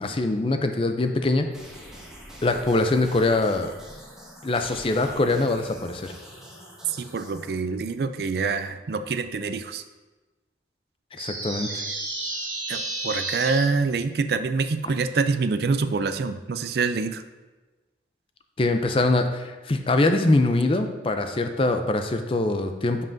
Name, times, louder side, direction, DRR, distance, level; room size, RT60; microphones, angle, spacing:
voice 1, 0.0-1.5 2.4-3.7 4.4-6.1 11.2-11.8 18.6-23.0, left 2 dB, 30° left, 6 dB, 0.5 m, -23 dB
sound 1, 1.5-7.5, equal, 5° right, 1.2 m, -45 dB
voice 2, 6.9-9.8 12.7-17.2, right 4 dB, 60° right, 10 dB, 0.4 m, -26 dB
sound 2, 11.2-13.6, right 2 dB, 20° right, 2.2 m, -31 dB
10.0 x 5.6 x 2.7 m, 1.2 s
head